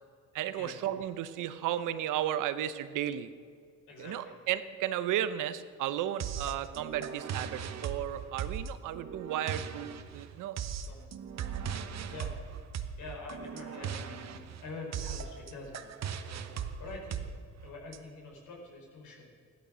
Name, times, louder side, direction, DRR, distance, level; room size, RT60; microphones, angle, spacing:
voice 1, 0.3-3.3 4.0-10.6, right 11 dB, 90° right, 12 dB, 0.9 m, -34 dB
voice 2, 3.9-4.3 10.8-11.1 11.8-12.5 13.0-17.3 17.6-19.3, left 3 dB, 80° left, 0 dB, 4.5 m, -46 dB
sound 1, 6.2-18.0, right 7 dB, 60° right, 1.1 m, -39 dB
15.5 x 12.5 x 6.3 m, 2.2 s
cardioid pair, 90°, 30 cm